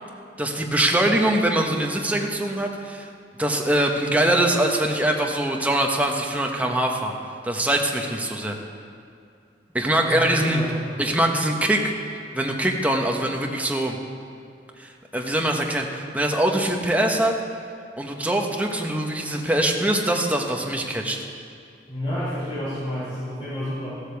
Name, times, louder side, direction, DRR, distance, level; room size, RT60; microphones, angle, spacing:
voice 1, 0.4-3.1 3.4-7.1 7.4-8.6 9.7-10.6 11.0-11.9 12.3-14.0 14.8-17.4 18.0-21.2, right 1 dB, 10° right, 1 dB, 1.1 m, -23 dB
voice 2, 10.0-10.9 21.9-23.9, equal, 35° left, -13 dB, 4.2 m, -30 dB
15.0 x 8.2 x 7.1 m, 2.4 s
head